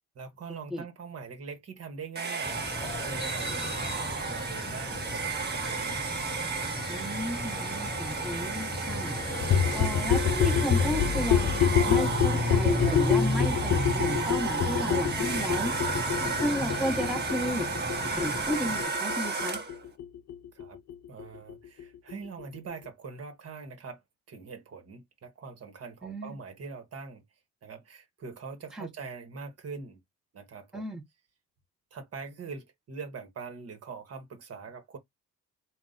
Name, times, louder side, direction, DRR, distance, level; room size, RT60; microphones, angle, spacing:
voice 1, 0.1-6.0 16.1-16.4 20.5-20.8 21.1-24.0 24.3-27.2 27.6-30.0 30.3-30.9 31.9-35.0, right 5 dB, 55° right, 1.3 m, -43 dB
Domestic sounds home sounds, 2.1-19.8, right 4 dB, 35° right, 1.3 m, -33 dB
sound 1, 2.4-18.8, left 2 dB, 15° left, 0.5 m, -35 dB
voice 2, 6.9-9.1 9.7-15.7 16.4-17.7 18.1-19.6 26.0-26.4 28.7-28.9 30.7-31.0, equal, ahead, 1.1 m, -33 dB
sound 2, 9.4-20.9 21.2-21.3 21.5-21.6 21.8-21.9 22.1-22.2 22.4-22.5 22.7-22.8, left 8 dB, 60° left, 0.6 m, -27 dB
3.8 x 2.5 x 3.9 m
cardioid pair, 90°, 30 cm